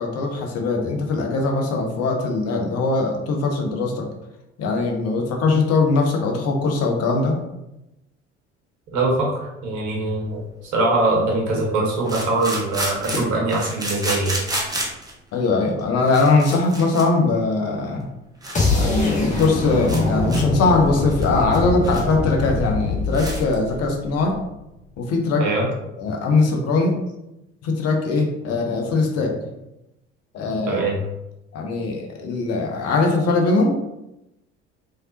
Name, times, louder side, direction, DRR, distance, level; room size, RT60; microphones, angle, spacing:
voice 1, 0.0-4.1 4.6-7.4 15.3-18.1 18.7-24.4 25.0-25.5 26.0-27.0 27.6-29.3 30.3-30.8 31.5-33.8, left 3 dB, 45° left, 1 dB, 0.7 m, -21 dB
voice 2, 8.9-10.4 10.7-14.4 25.4-25.7 30.7-31.0, right 2 dB, 55° right, -3 dB, 1.2 m, -22 dB
sound 1, 10.2-10.3 12.0-15.1 15.8-15.9 16.1-17.0 17.3-17.5 18.0-18.1 18.4-18.6 18.8-18.9 19.2-19.5 19.9-20.0 20.3-20.4 20.9-22.1 22.4-22.5 22.8-22.9 23.1-23.5, right 1 dB, 10° right, 0.8 m, -30 dB
sound 2, 18.5-24.5, left 3 dB, 20° left, 1.0 m, -24 dB
3.2 x 2.7 x 2.7 m, 0.91 s
figure-of-eight pair, 60°, 35 cm